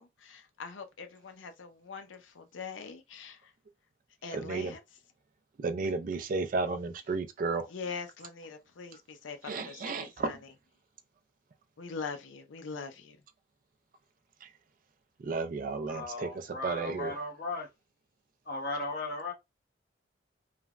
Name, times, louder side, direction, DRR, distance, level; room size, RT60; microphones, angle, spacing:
voice 1, 0.0-3.5 4.2-4.8 5.8-5.9 7.7-10.4 11.8-13.2, left 5 dB, 85° left, 0.5 m, -42 dB
voice 2, 4.3-4.7 5.6-7.7 9.4-10.4 14.4-14.5 15.2-16.3 16.6-17.2, right 4 dB, 45° right, 0.3 m, -33 dB
voice 3, 15.9-17.7 18.4-19.3, left 2 dB, 50° left, 0.9 m, -36 dB
3.2 x 2.0 x 2.3 m
head